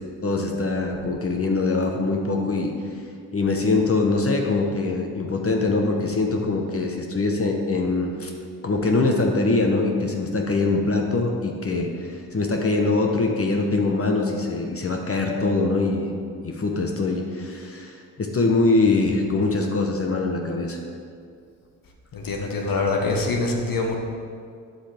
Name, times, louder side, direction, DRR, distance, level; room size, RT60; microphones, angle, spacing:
voice 1, 0.2-2.7 3.3-8.3 8.6-16.2 16.4-20.8, left 3 dB, 35° left, 2 dB, 1.3 m, -23 dB
voice 2, 22.1-24.0, left 3 dB, 55° left, 0 dB, 1.6 m, -24 dB
9.5 x 7.1 x 3.6 m, 2.2 s
supercardioid pair, 50°, 39 cm